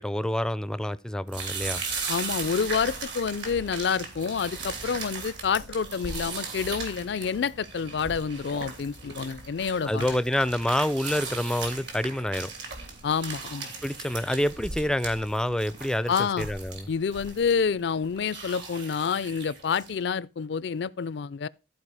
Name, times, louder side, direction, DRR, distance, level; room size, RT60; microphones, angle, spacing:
voice 1, 0.0-1.8 9.9-12.5 13.8-16.9, left 1 dB, 5° left, 0.4 m, -27 dB
sound 1, 1.3-20.0, right 4 dB, 70° right, 3.0 m, -38 dB
voice 2, 2.1-10.1 13.0-13.7 16.1-16.5 16.9-21.5, left 6 dB, 65° left, 0.4 m, -28 dB
14.0 x 4.7 x 4.8 m
head